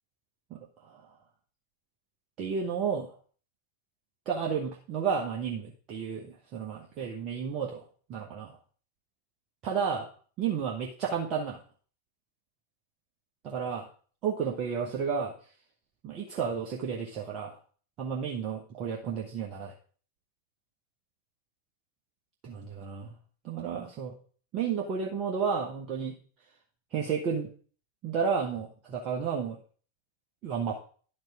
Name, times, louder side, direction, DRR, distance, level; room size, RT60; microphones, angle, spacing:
voice 1, 0.5-1.1 2.4-3.1 4.2-8.6 9.6-10.1 10.4-11.6 13.4-13.9 14.2-15.3 16.0-17.6 18.0-19.7 22.4-23.1 23.4-24.1 24.5-26.1 26.9-27.5 28.0-29.6 30.4-30.8, right 6 dB, 35° right, -1 dB, 1.3 m, -32 dB
11.0 x 4.8 x 4.9 m, 0.43 s
figure-of-eight pair, 90°, 0 cm